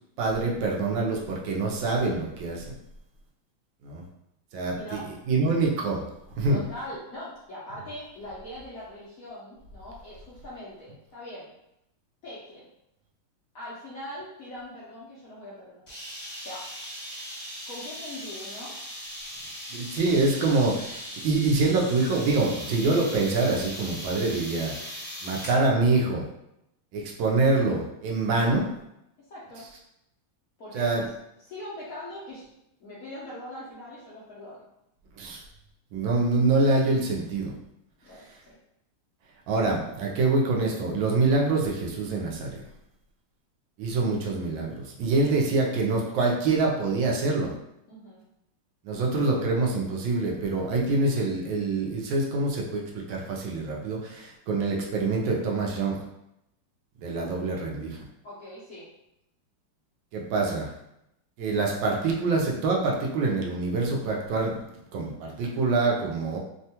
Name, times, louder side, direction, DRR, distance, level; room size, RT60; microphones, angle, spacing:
voice 1, 0.2-2.7 3.8-4.0 4.5-5.0 5.3-6.1 6.4-6.6 19.7-26.2 26.9-28.7 30.7-31.0 35.2-35.4 35.9-37.5 39.5-42.6 43.8-47.5 48.8-56.0 57.0-58.0 60.1-60.7 61.4-64.6 64.9-66.4, right 3 dB, 75° right, -1 dB, 1.2 m, -25 dB
voice 2, 4.7-5.1 6.5-11.5 12.2-12.7 13.5-15.9 16.4-16.6 17.7-18.7 29.3-29.6 30.6-31.1 31.4-32.4 32.8-34.6 38.0-38.6 47.9-48.2 58.2-58.9, left 1 dB, 75° left, -8 dB, 0.7 m, -41 dB
sound 1, 15.9-25.6, equal, 25° left, 0.9 m, -39 dB
3.5 x 2.2 x 2.8 m, 0.83 s
omnidirectional pair, 2.4 m